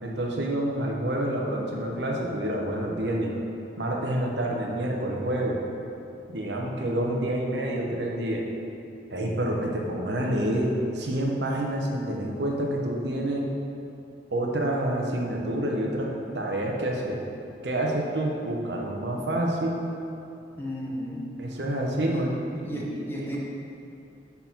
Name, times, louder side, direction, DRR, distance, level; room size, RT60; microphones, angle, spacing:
voice 1, 0.0-3.3 3.8-5.6 6.3-8.5 9.1-13.5 14.3-16.1 16.3-17.2 17.6-19.8 21.4-23.4, right 1 dB, 75° right, -1 dB, 0.9 m, -28 dB
voice 2, 20.6-21.3 22.1-22.2 22.7-23.4, equal, 10° left, -4 dB, 0.8 m, -34 dB
5.4 x 4.6 x 5.8 m, 2.7 s
head